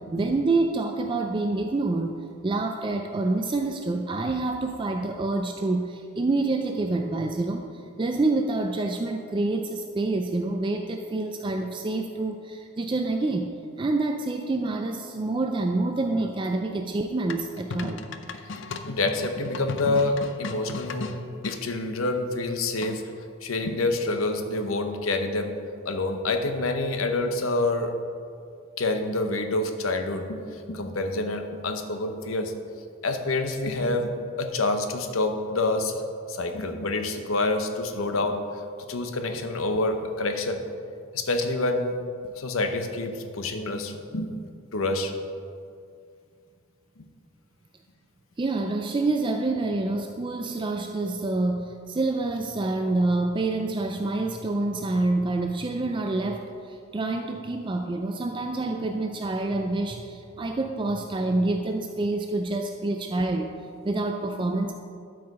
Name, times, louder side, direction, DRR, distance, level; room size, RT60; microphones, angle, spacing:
voice 1, 0.1-2.1 2.4-7.6 8.0-18.0 48.4-63.5 63.8-64.7, right 2 dB, 25° right, 4 dB, 0.3 m, -27 dB
sound 1, 17.3-21.6 22.8-23.2, left 4 dB, 60° left, 0.5 m, -37 dB
voice 2, 18.8-21.2 21.4-23.0 23.4-25.5 25.8-27.9 28.8-30.4 30.7-32.5 33.0-34.1 34.4-36.0 36.3-38.4 38.9-40.6 41.1-42.0 42.4-44.3 44.7-45.1, left 2 dB, 85° left, 6 dB, 0.8 m, -27 dB
12.0 x 4.7 x 4.8 m, 2.3 s
head